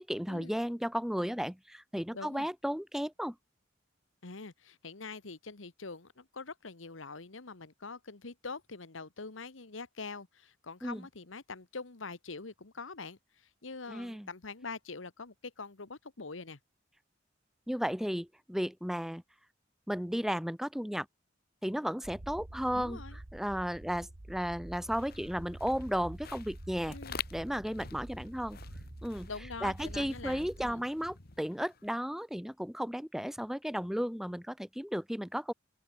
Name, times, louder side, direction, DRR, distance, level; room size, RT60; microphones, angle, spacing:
voice 1, 0.0-3.3 10.8-11.1 13.9-14.3 17.7-19.2 19.9-21.1 21.6-23.0 23.3-27.0 27.3-28.6 29.0-29.3 29.6-35.5, equal, ahead, 1.2 m, -34 dB
voice 2, 2.1-2.5 4.2-16.6 22.7-23.2 26.8-27.2 29.3-30.8, left 4 dB, 85° left, 1.5 m, -44 dB
sound 1, 22.0-30.7, right 1 dB, 45° right, 1.3 m, -47 dB
sound 2, 24.7-32.0, left 6 dB, 50° left, 1.8 m, -48 dB
open air
head